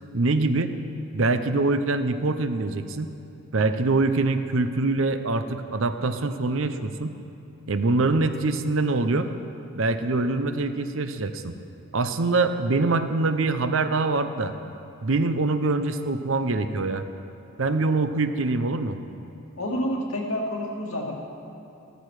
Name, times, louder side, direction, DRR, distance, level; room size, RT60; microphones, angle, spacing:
voice 1, 0.1-0.7 1.1-3.1 3.5-7.2 7.7-9.3 9.8-11.5 11.9-14.5 15.0-17.0 17.6-19.0, right 3 dB, 70° right, 9 dB, 0.7 m, -24 dB
voice 2, 19.6-21.1, equal, 90° left, -1 dB, 2.1 m, -28 dB
14.5 x 13.5 x 4.8 m, 2.8 s
head